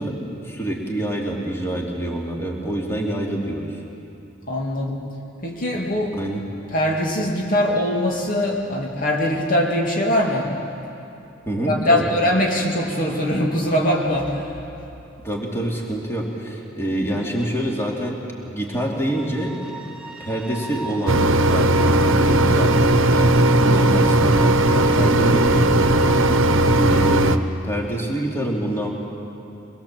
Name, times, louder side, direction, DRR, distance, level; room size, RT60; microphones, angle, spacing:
voice 1, 0.0-3.8 6.1-6.4 11.5-12.1 15.2-18.2 18.5-19.8 20.2-25.7 26.2-28.9, right 1 dB, 15° left, -2 dB, 2.8 m, -26 dB
voice 2, 4.5-5.0 5.4-6.2 6.7-10.6 11.7-14.6 26.1-26.5, left 1 dB, 45° left, -1 dB, 2.4 m, -22 dB
sound 1, 19.0-27.2, right 3 dB, 5° right, 2.1 m, -34 dB
Mechanisms, 21.1-27.4, right 1 dB, 85° right, 1.0 m, -17 dB
24.0 x 21.5 x 7.5 m, 2.7 s
head